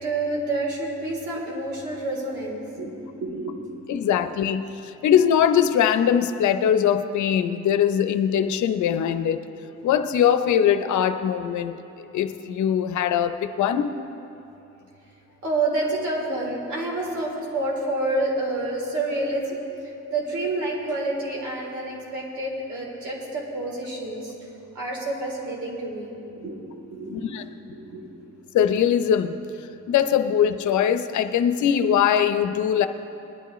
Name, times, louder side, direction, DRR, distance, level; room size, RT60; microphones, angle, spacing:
voice 1, 0.0-2.9 3.2-3.6 15.4-19.6 20.1-24.3 24.8-26.6 26.9-27.3 27.7-28.1, right 2 dB, 70° right, -3 dB, 3.4 m, -28 dB
voice 2, 3.9-4.6 5.0-9.4 9.8-11.7 12.1-13.9 27.1-27.4 28.5-29.4 29.9-32.9, left 9 dB, 70° left, 9 dB, 0.7 m, -21 dB
20.5 x 10.5 x 3.1 m, 2.9 s
cardioid pair, 90°, 30 cm